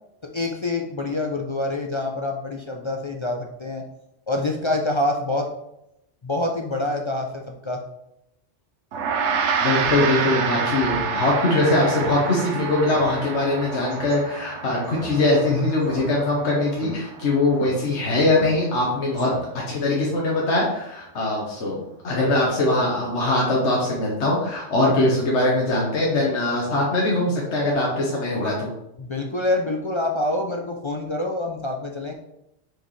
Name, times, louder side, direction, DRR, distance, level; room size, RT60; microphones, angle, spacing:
voice 1, 0.3-3.8 4.3-5.5 6.2-7.3 7.6-7.8 29.0-32.1, left 2 dB, 40° left, 1 dB, 0.4 m, -26 dB
Gong, 8.9-18.5, right 6 dB, 75° right, 1.0 m, -28 dB
voice 2, 9.6-28.7, left 2 dB, 70° left, -4 dB, 1.5 m, -22 dB
Speech synthesizer, 9.7-10.0 10.3-10.4 10.7-11.1 11.4-11.5 12.0-12.1 12.4-12.5 12.9-13.1 13.9-14.1 14.8-15.4 15.8-16.4 16.7-16.9 17.5-17.7 18.3-18.8 19.1-19.7, equal, 40° right, 1.7 m, -36 dB
6.2 x 4.8 x 3.2 m, 0.83 s
omnidirectional pair, 1.2 m